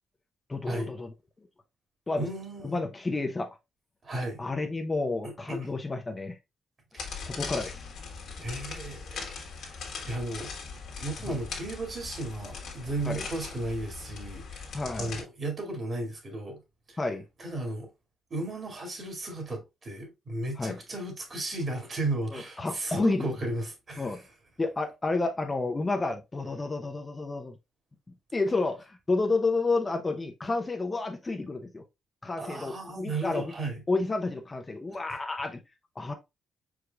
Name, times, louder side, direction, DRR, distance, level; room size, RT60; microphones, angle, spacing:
voice 1, 0.5-1.1 2.1-2.3 2.6-3.5 4.4-6.4 7.2-7.8 11.3-11.4 13.0-13.3 14.7-15.2 17.0-17.2 20.6-20.8 22.3-23.4 24.0-24.2 24.6-27.6 28.3-31.8 32.2-33.5 33.9-35.6 36.0-36.1, left 3 dB, 25° left, 0.7 m, -30 dB
voice 2, 2.2-2.8 4.0-4.4 5.2-5.7 6.9-7.3 8.4-9.8 10.1-10.5 11.0-16.6 16.9-17.0 17.4-17.9 18.3-24.2 32.4-33.8, right 2 dB, 40° right, 2.2 m, -35 dB
sound 1, 7.0-15.2, left 5 dB, 70° left, 1.6 m, -40 dB
4.8 x 4.8 x 2.3 m
cardioid pair, 95°, 0 cm